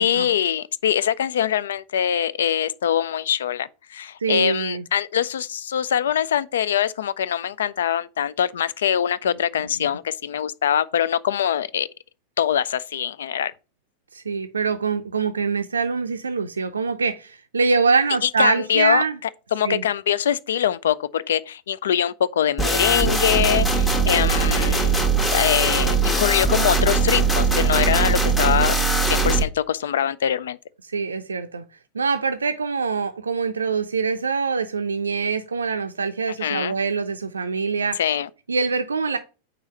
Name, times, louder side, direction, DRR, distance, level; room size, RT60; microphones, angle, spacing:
voice 1, 0.0-11.9 12.4-13.5 18.2-19.0 19.5-25.0 25.3-28.7 29.1-30.6 36.4-36.7 38.0-38.3, left 9 dB, 60° left, 0.3 m, -23 dB
voice 2, 4.2-4.8 14.1-19.2 19.6-19.8 30.9-31.6 31.9-38.0 38.5-39.2, right 4 dB, 75° right, 0.4 m, -24 dB
sound 1, 22.6-29.4, right 4 dB, 15° left, 1.1 m, -20 dB
4.7 x 3.9 x 5.3 m
figure-of-eight pair, 90°, 0 cm